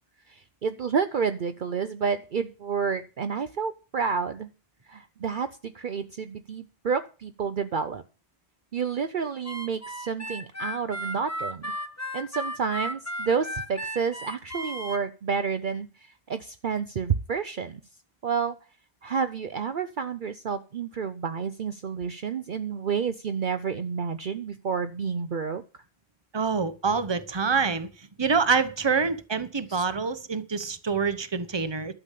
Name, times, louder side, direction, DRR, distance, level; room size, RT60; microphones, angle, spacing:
voice 1, 0.3-4.5 4.9-8.0 8.7-11.7 12.1-17.8 18.2-18.6 19.0-25.6 29.7-29.8, right 6 dB, 55° right, 0.8 m, -30 dB
Harmonica, 9.4-15.0, equal, 15° left, 1.2 m, -35 dB
voice 2, 26.3-27.9 28.2-31.9, right 5 dB, 25° right, 1.0 m, -26 dB
12.0 x 7.2 x 8.4 m
omnidirectional pair, 1.1 m